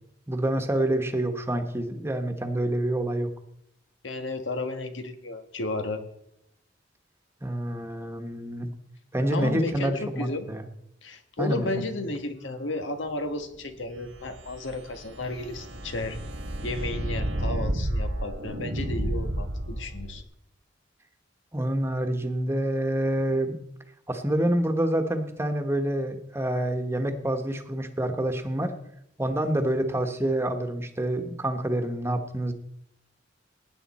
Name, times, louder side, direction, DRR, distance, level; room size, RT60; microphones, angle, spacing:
voice 1, 0.3-3.3 7.4-8.7 9.1-10.6 11.4-11.9 21.5-23.6 24.1-28.7 29.2-32.5, right 1 dB, 15° right, 6 dB, 1.2 m, -27 dB
voice 2, 4.0-6.0 9.3-10.5 11.0-16.2 16.6-20.2, left 2 dB, 85° left, 8 dB, 1.5 m, -33 dB
sound 1, 13.9-20.2, right 1 dB, 90° right, 1.6 m, -31 dB
19.0 x 9.5 x 4.3 m, 0.78 s
head